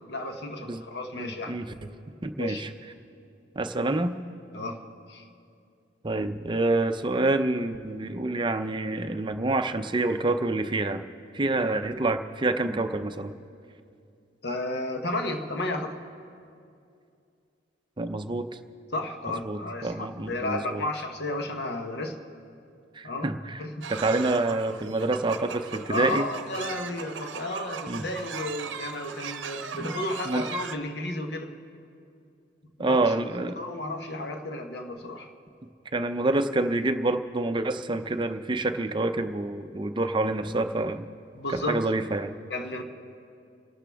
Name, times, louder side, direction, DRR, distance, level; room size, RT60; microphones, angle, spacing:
voice 1, 0.0-1.6 2.4-2.7 4.5-4.8 5.1-5.2 11.5-11.6 14.4-16.0 18.9-22.2 23.0-23.3 23.6-23.9 25.9-31.5 32.8-33.3 33.6-35.3 41.3-41.8 42.5-42.8, left 2 dB, 60° left, 5 dB, 1.1 m, -33 dB
voice 2, 1.1-1.7 2.2-2.7 3.6-4.1 6.0-11.0 11.3-13.3 18.0-18.5 19.4-20.8 23.0-23.6 23.9-26.3 27.9-28.0 29.8-29.9 30.3-30.4 32.8-33.5 35.9-41.0 41.7-42.4, right 2 dB, 25° right, 8 dB, 0.6 m, -27 dB
sound 1, 23.8-30.7, right 6 dB, 85° right, 0.7 m, -38 dB
29.5 x 12.0 x 3.5 m, 2.5 s
head